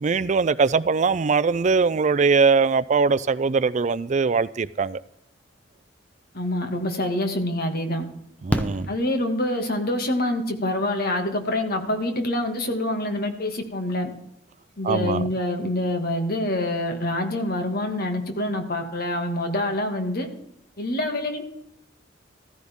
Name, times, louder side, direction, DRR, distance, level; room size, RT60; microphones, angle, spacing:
voice 1, 0.0-5.0 8.4-8.9 14.8-15.3, right 4 dB, 40° right, 0.4 m, -21 dB
voice 2, 6.3-8.0 8.9-14.1 14.8-20.3 20.8-21.4, left 1 dB, 55° left, 2.0 m, -26 dB
Fireworks, 8.5-9.8 11.6-11.7 11.9-12.0, equal, 10° left, 0.9 m, -29 dB
15.0 x 14.5 x 3.6 m
head